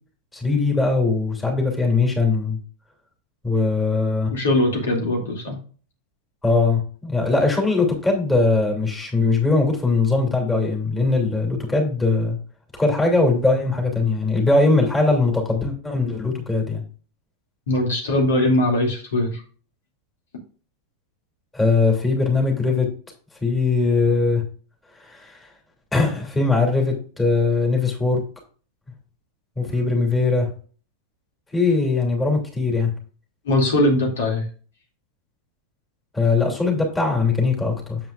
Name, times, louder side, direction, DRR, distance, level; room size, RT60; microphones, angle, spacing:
voice 1, 0.3-2.6 3.4-4.3 6.4-12.4 12.8-16.8 21.5-22.9 23.4-24.4 25.0-25.5 25.9-28.2 29.6-30.5 31.5-32.9 36.1-38.0, left 3 dB, 10° left, 1 dB, 2.9 m, -20 dB
voice 2, 4.3-5.6 17.7-19.4 33.5-34.4, left 1 dB, 60° left, 1 dB, 2.5 m, -20 dB
9.2 x 7.7 x 2.5 m, 0.40 s
figure-of-eight pair, 90°, 0 cm